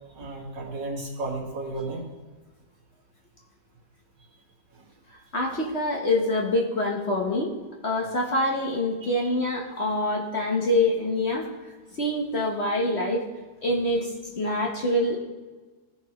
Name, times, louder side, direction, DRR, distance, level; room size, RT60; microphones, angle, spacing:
voice 1, 0.1-2.1 4.7-4.9 9.0-9.3, right 2 dB, 75° right, -3 dB, 2.4 m, -34 dB
voice 2, 5.3-7.6 7.8-11.7 12.0-13.2 13.6-15.2, left 1 dB, 45° left, -1 dB, 1.0 m, -25 dB
15.5 x 5.4 x 3.0 m, 1.3 s
omnidirectional pair, 1.9 m